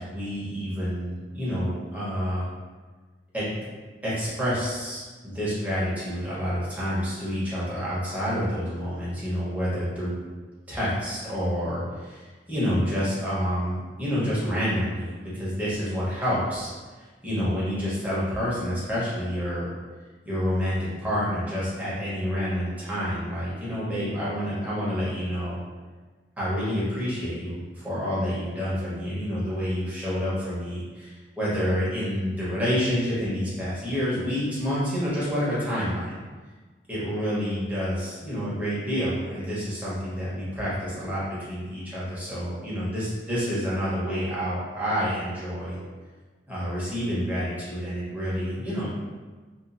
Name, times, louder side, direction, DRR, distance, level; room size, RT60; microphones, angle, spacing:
voice 1, 0.0-2.5 3.3-3.7 4.0-10.2 10.7-16.7 17.2-19.7 20.2-25.6 26.4-36.2 36.9-45.8 46.5-48.9, equal, 10° right, -10 dB, 0.9 m, -28 dB
2.7 x 2.5 x 2.5 m, 1.3 s
head